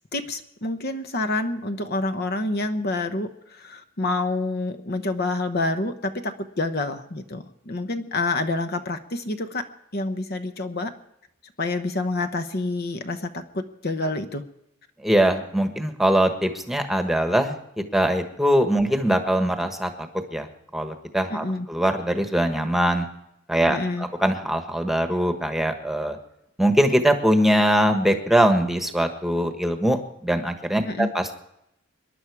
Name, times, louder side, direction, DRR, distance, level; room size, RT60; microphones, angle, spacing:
voice 1, 0.1-9.7 9.9-10.9 11.6-14.4 21.3-21.7 23.7-24.1 30.9-31.1, left 2 dB, 50° left, 8 dB, 1.0 m, -28 dB
voice 2, 15.0-20.5 20.7-23.1 23.5-26.2 26.6-31.4, right 1 dB, ahead, 6 dB, 1.3 m, -22 dB
26.0 x 11.0 x 4.8 m, 0.82 s
head